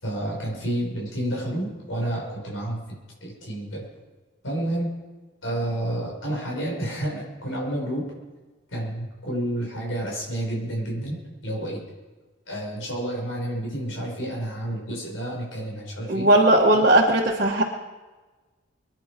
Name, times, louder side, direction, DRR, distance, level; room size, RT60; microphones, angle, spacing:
voice 1, 0.0-3.8 4.4-4.9 5.4-8.0 8.7-11.8 12.5-16.3 16.7-16.8, right 1 dB, 85° left, -2 dB, 5.9 m, -30 dB
voice 2, 16.1-17.6, right 1 dB, 45° right, -3 dB, 1.5 m, -18 dB
24.0 x 10.5 x 5.1 m, 1.3 s
head